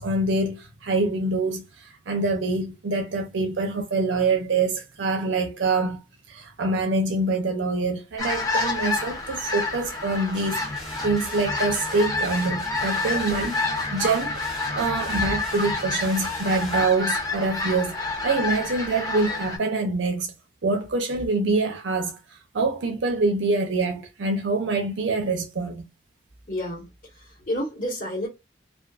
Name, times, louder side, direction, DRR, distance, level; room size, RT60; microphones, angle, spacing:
voice 1, 0.0-6.0 6.3-10.6 11.0-20.3 20.6-25.8, right 3 dB, 75° right, 0.5 m, -25 dB
sound 1, 8.2-19.6, left 3 dB, 20° left, 1.0 m, -29 dB
sound 2, 10.3-16.9, left 1 dB, ahead, 0.6 m, -39 dB
voice 2, 26.5-28.3, equal, 45° left, 1.3 m, -30 dB
2.5 x 2.3 x 2.3 m
head